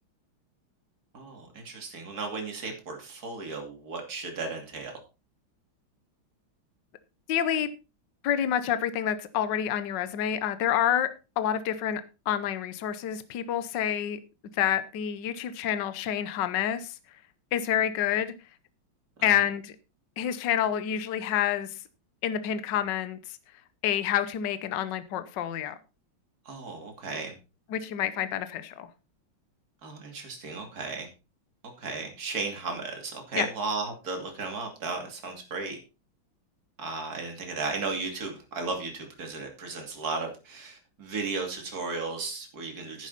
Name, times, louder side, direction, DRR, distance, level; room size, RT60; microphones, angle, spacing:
voice 1, 1.1-4.9 19.2-19.3 26.4-27.3 29.8-31.1 31.8-35.8 36.8-43.1, right 4 dB, 45° right, 3.2 m, -35 dB
voice 2, 7.3-7.7 8.2-11.1 11.4-14.2 14.5-16.9 17.5-18.3 19.2-19.7 20.2-21.7 22.2-23.4 23.8-25.8 27.7-28.9 33.3-33.4, left 10 dB, 65° left, 1.5 m, -28 dB
10.5 x 10.5 x 4.1 m
omnidirectional pair, 2.3 m